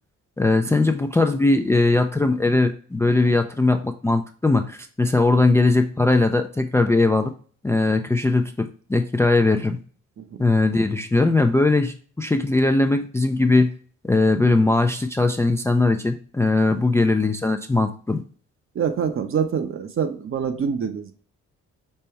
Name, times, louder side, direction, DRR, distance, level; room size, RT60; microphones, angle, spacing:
voice 1, 0.4-7.3 7.6-9.8 10.4-13.7 14.0-18.2, left 2 dB, 10° left, 7 dB, 0.4 m, -20 dB
voice 2, 18.7-21.1, right 7 dB, 45° right, 8 dB, 0.8 m, -26 dB
5.4 x 2.2 x 4.3 m, 0.43 s
cardioid pair, 90°, 30 cm